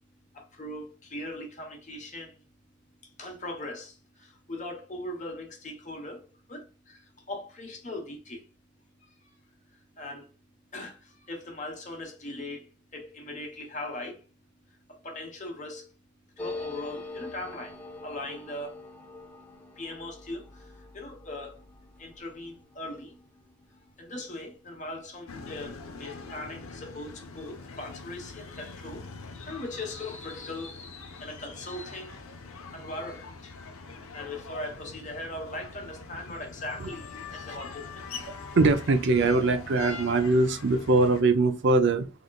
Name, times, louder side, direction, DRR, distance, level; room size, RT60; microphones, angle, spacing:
voice 1, 0.3-2.4 3.0-8.5 9.0-9.3 9.7-10.3 10.7-14.2 14.9-15.9 16.4-18.8 19.8-21.6 22.0-23.2 23.7-33.6 34.1-38.3, left 2 dB, 35° left, 1.1 m, -40 dB
sound 1, 16.4-25.5 25.8-25.9 26.1-26.7, left 2 dB, 5° left, 0.5 m, -44 dB
sound 2, 25.3-41.2, left 4 dB, 90° left, 0.7 m, -43 dB
voice 2, 38.3-42.1, right 3 dB, 55° right, 0.5 m, -22 dB
3.7 x 3.5 x 2.3 m
head